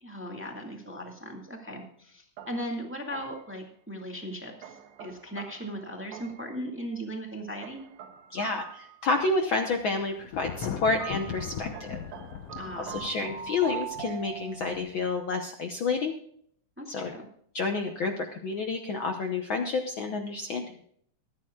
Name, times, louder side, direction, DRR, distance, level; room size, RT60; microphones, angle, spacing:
voice 1, 0.0-7.8 12.6-13.0 16.8-17.3, equal, 5° right, 2 dB, 1.2 m, -38 dB
sound 1, 2.4-3.6 4.6-6.6 7.6-9.6 10.6-14.9, right 10 dB, 65° right, 2.2 m, -43 dB
voice 2, 8.3-12.0 12.7-16.1 16.9-17.1 17.5-20.7, left 3 dB, 85° left, 4 dB, 1.1 m, -29 dB
Thunder, 9.7-15.1, left 8 dB, 70° left, 1.6 m, -39 dB
24.5 x 9.1 x 2.4 m, 0.65 s
omnidirectional pair, 3.7 m